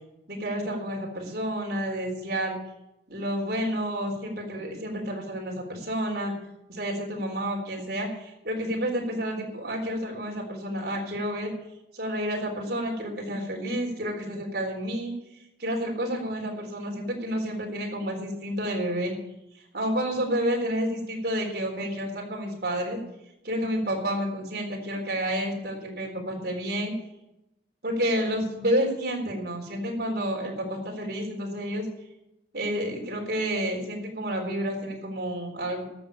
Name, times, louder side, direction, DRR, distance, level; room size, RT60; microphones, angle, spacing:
voice 1, 0.3-2.5 3.1-6.3 6.7-11.5 11.9-15.1 15.6-19.1 19.7-23.0 23.4-26.9 27.8-31.9 32.5-35.8, equal, 60° right, 0 dB, 3.9 m, -30 dB
13.0 x 6.9 x 8.9 m, 0.90 s
head